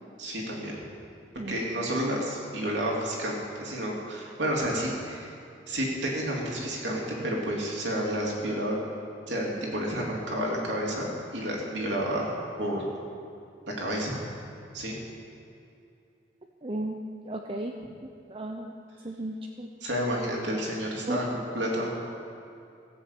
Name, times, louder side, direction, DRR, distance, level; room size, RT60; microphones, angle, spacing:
voice 1, 0.2-0.8 1.5-5.4 5.7-8.8 9.3-12.9 13.8-14.1 14.7-15.0 19.8-21.9, equal, 80° right, -3 dB, 3.1 m, -30 dB
voice 2, 16.6-17.8 18.3-18.7 19.0-19.7 21.1-21.2, right 1 dB, 30° right, 2 dB, 0.7 m, -34 dB
16.5 x 7.2 x 8.3 m, 2.6 s
head